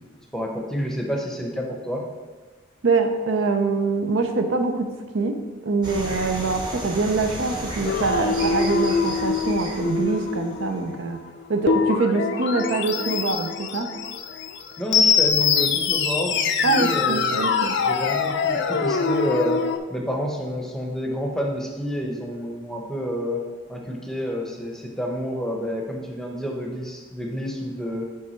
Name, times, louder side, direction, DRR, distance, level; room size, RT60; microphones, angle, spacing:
voice 1, 0.3-2.0 14.8-19.6 19.9-23.4 23.7-28.1, equal, ahead, 0 dB, 0.7 m, -29 dB
voice 2, 2.8-11.2 11.5-13.9 16.6-17.8, right 3 dB, 75° right, 6 dB, 0.6 m, -24 dB
sound 1, 5.8-10.9, right 1 dB, 25° right, 0.9 m, -34 dB
Sick Synthetic Shooting Stars, 7.8-19.8, left 5 dB, 60° left, 0.4 m, -24 dB
7.7 x 3.5 x 4.4 m, 1.3 s
head